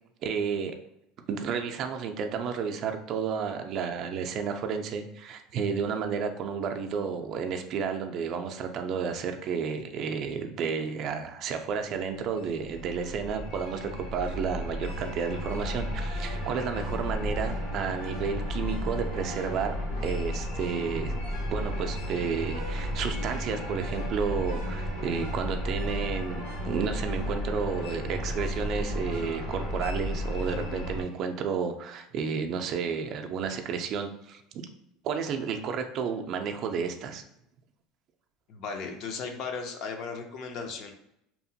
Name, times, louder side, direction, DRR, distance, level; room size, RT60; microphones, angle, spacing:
voice 1, 0.2-0.8 1.3-19.8 20.0-21.2 21.5-34.7 35.0-37.2, right 6 dB, 50° right, 5 dB, 0.3 m, -31 dB
sound 1, 12.1-31.0, equal, 75° left, 1.0 m, -33 dB
voice 2, 38.5-40.9, left 5 dB, 55° left, 4 dB, 0.5 m, -36 dB
2.8 x 2.1 x 2.7 m, 0.79 s
supercardioid pair, 130°, 0 cm